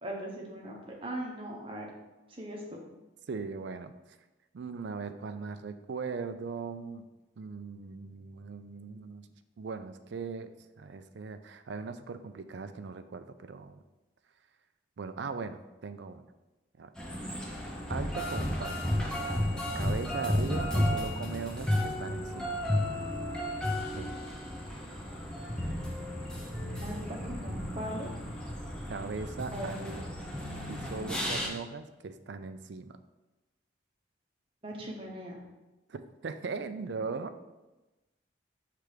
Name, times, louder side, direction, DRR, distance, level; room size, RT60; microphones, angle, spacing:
voice 1, 0.0-1.9 2.3-2.8 26.8-28.1 29.5-29.8 34.6-35.4, right 1 dB, 30° right, -2 dB, 1.0 m, -39 dB
voice 2, 3.3-3.9 4.5-7.1 7.4-9.3 9.6-10.5 10.8-13.8 15.0-16.2 16.8-17.2 17.9-18.8 19.7-22.6 24.0-24.1 28.9-30.1 30.7-33.0 35.9-37.3, right 4 dB, 70° right, 10 dB, 0.4 m, -39 dB
sound 1, 17.0-31.5, left 1 dB, 5° left, 0.7 m, -33 dB
6.1 x 3.4 x 5.0 m, 1.1 s
head